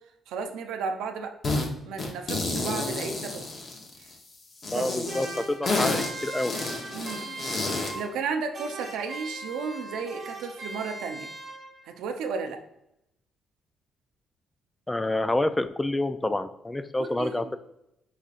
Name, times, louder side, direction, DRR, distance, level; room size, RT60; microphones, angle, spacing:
voice 1, 0.3-1.3 1.9-3.4 4.7-5.1 6.9-7.4 7.9-11.3 11.8-12.6 17.0-17.5, right 5 dB, 90° right, 6 dB, 0.5 m, -33 dB
sound 1, 1.4-1.7 2.0-4.1 4.6-8.0, left 2 dB, 45° left, 0.9 m, -30 dB
voice 2, 4.7-6.5 14.9-17.6, left 1 dB, 15° left, 11 dB, 0.3 m, -28 dB
sound 2, 5.1-8.3 8.5-11.9, right 2 dB, 35° right, 1.1 m, -39 dB
4.9 x 4.0 x 2.5 m, 0.84 s
cardioid pair, 90°, 0 cm